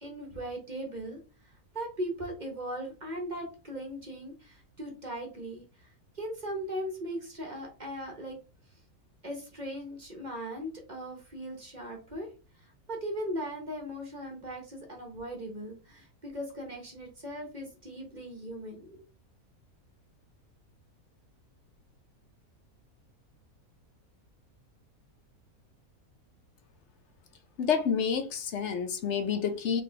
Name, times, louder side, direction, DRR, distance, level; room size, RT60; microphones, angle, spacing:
voice 1, 0.0-1.2 1.7-5.6 6.1-8.4 9.2-12.3 12.9-19.0, equal, 35° right, 1.2 m, -38 dB
voice 2, 27.6-29.8, left 7 dB, 60° left, 0.9 m, -29 dB
4.2 x 3.2 x 3.3 m
omnidirectional pair, 1.6 m